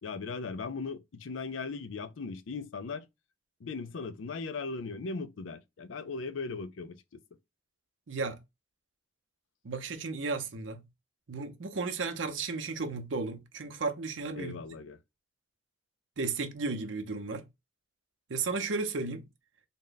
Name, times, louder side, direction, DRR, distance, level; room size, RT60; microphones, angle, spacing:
voice 1, 0.0-3.1 3.6-7.2 14.4-15.0, left 4 dB, 90° left, 0.5 m, -38 dB
voice 2, 8.1-8.4 9.6-10.8 11.3-14.6 16.2-17.4 18.3-19.2, right 4 dB, 80° right, 0.7 m, -34 dB
3.6 x 2.2 x 3.8 m
head